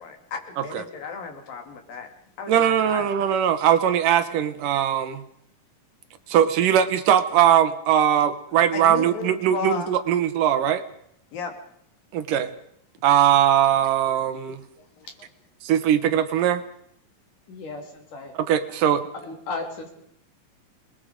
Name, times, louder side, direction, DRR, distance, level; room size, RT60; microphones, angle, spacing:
voice 1, 0.0-2.1 2.4-3.1 8.7-10.0 11.3-11.5 14.8-15.3, left 5 dB, 85° left, 5 dB, 4.3 m, -34 dB
voice 2, 2.5-5.2 6.3-10.8 12.1-12.5 13.0-14.6 15.6-16.6 18.4-19.0, right 10 dB, 75° right, 11 dB, 2.8 m, -20 dB
voice 3, 17.5-18.3 19.2-19.9, left 3 dB, 65° left, 3 dB, 4.9 m, -35 dB
27.0 x 21.0 x 5.2 m, 0.71 s
omnidirectional pair, 3.9 m